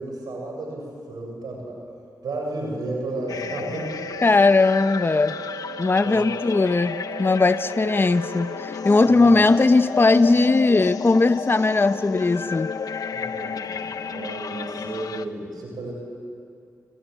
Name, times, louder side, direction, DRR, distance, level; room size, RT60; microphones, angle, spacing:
voice 1, 0.0-1.8 2.2-4.0 6.0-6.3 9.0-9.4 13.1-15.9, right 2 dB, 85° right, 0 dB, 7.1 m, -33 dB
sound 1, 2.9-8.9, right 4 dB, 10° right, 6.5 m, -39 dB
sound 2, 3.3-15.3, left 5 dB, 75° left, 1.1 m, -32 dB
voice 2, 4.2-5.4 5.8-12.7, left 3 dB, 35° left, 11 dB, 0.9 m, -19 dB
27.0 x 23.5 x 9.4 m, 2.4 s
cardioid pair, 60°, 7 cm